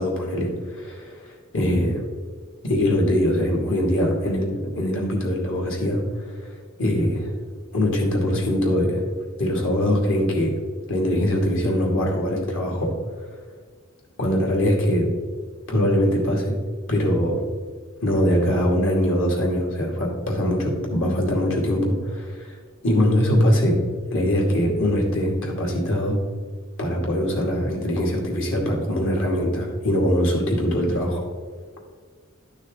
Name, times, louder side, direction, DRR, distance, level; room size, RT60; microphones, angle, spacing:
voice 1, 0.0-2.0 2.6-7.3 7.7-9.0 9.4-10.5 10.9-12.9 14.2-15.1 15.7-16.6 16.9-17.4 18.0-22.5 22.8-23.8 24.1-26.2 26.8-31.2, equal, 65° left, -1 dB, 2.5 m, -22 dB
12.0 x 6.3 x 3.8 m, 1.5 s
head